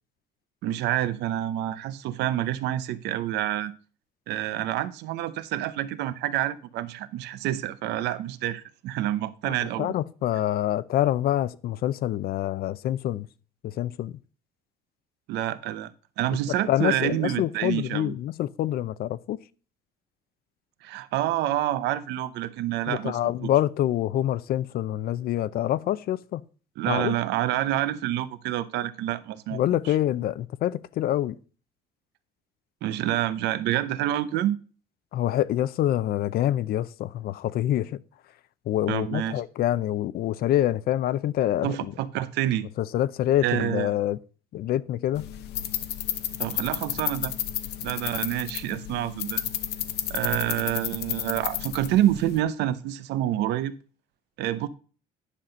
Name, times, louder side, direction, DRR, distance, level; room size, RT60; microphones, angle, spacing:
voice 1, 0.6-3.7 4.3-9.9 15.3-18.1 20.8-23.2 26.8-29.6 29.8-29.9 32.8-34.6 38.9-39.4 41.6-42.7 43.4-43.9 46.4-47.3 47.8-49.4 50.1-53.7 54.4-54.7, right 13 dB, 85° right, 0.7 m, -28 dB
voice 2, 9.4-13.3 13.6-14.2 16.5-19.4 22.9-26.5 26.9-27.1 29.5-31.4 35.1-38.0 38.7-41.7 42.8-44.2 44.5-45.3, left 12 dB, 65° left, 0.6 m, -26 dB
sound 1, 45.1-52.4, left 12 dB, 80° left, 0.9 m, -32 dB
10.0 x 5.9 x 5.2 m
cardioid pair, 110°, 17 cm